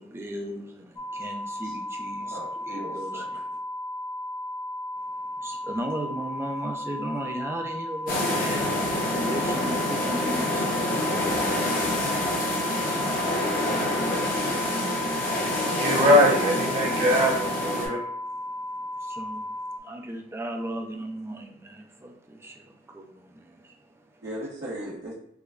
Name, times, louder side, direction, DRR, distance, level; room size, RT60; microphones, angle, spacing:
voice 1, 0.0-3.4 5.1-15.9 18.2-24.2, right 1 dB, 15° right, 0.4 m, -38 dB
sound 1, 1.0-19.8, left 1 dB, 20° left, 0.7 m, -35 dB
voice 2, 2.2-3.4 24.2-25.1, right 1 dB, 65° right, 0.9 m, -38 dB
sound 2, 8.1-17.9, left 1 dB, 50° left, 1.0 m, -27 dB
voice 3, 15.7-18.0, equal, 40° right, 1.0 m, -21 dB
4.8 x 2.2 x 2.4 m
head